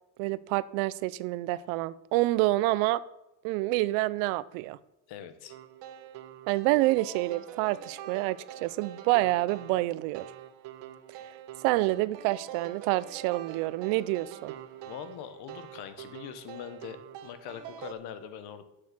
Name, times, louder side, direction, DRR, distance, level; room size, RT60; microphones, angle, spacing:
voice 1, 0.2-3.0 3.4-4.8 6.5-10.3 11.6-14.5, right 18 dB, 85° right, 18 dB, 0.6 m, -27 dB
voice 2, 5.1-5.6 14.8-18.6, left 9 dB, 55° left, 11 dB, 1.2 m, -42 dB
sound 1, 5.5-17.9, right 10 dB, 70° right, 1.2 m, -45 dB
7.6 x 6.6 x 7.4 m, 0.93 s
cardioid pair, 165°, 46 cm